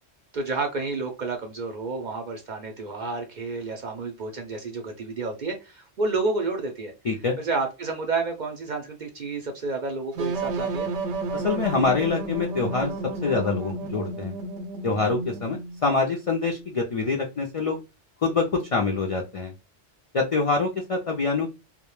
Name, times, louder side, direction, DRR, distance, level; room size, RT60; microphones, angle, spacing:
voice 1, 0.3-6.9 7.4-10.9, right 3 dB, 55° right, 3 dB, 0.5 m, -30 dB
sound 1, 10.1-15.8, right 3 dB, 90° right, 0.9 m, -31 dB
voice 2, 11.3-12.9 13.2-14.3 14.8-17.8 18.2-19.5 20.1-21.5, left 4 dB, 65° left, 1 dB, 0.3 m, -25 dB
2.1 x 2.1 x 3.0 m, 0.27 s
omnidirectional pair, 1.2 m